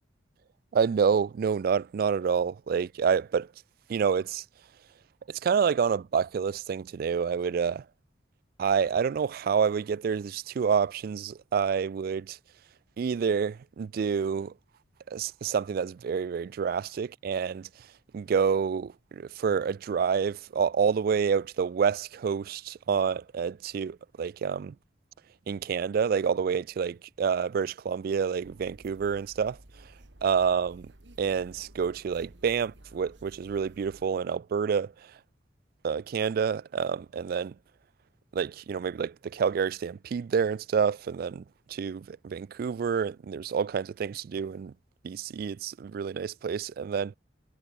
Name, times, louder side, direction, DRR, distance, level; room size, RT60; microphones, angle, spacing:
voice 1, 0.7-3.5 3.9-4.4 5.3-7.8 8.6-12.4 13.0-14.5 15.1-17.7 18.1-24.7 25.5-29.6 30.2-30.9 31.2-34.9 35.8-37.5 38.3-44.7 45.0-47.1, right 6 dB, 55° right, 0.3 m, -28 dB
sound 1, 28.4-34.1, right 1 dB, 75° right, 2.3 m, -53 dB
head